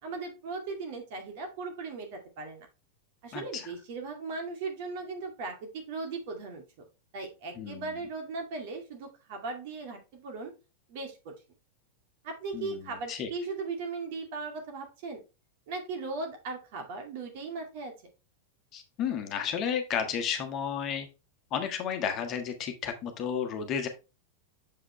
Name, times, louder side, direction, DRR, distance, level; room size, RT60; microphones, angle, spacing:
voice 1, 0.0-2.7 3.2-6.8 7.1-10.5 10.9-11.3 12.2-15.2 15.7-17.9, right 3 dB, 50° right, 3 dB, 2.3 m, -38 dB
voice 2, 3.3-3.7 7.5-8.0 12.5-13.3 18.7-21.1 21.5-23.9, left 7 dB, 35° left, 6 dB, 1.4 m, -32 dB
7.6 x 5.0 x 3.2 m, 0.29 s
figure-of-eight pair, 90°, 0 cm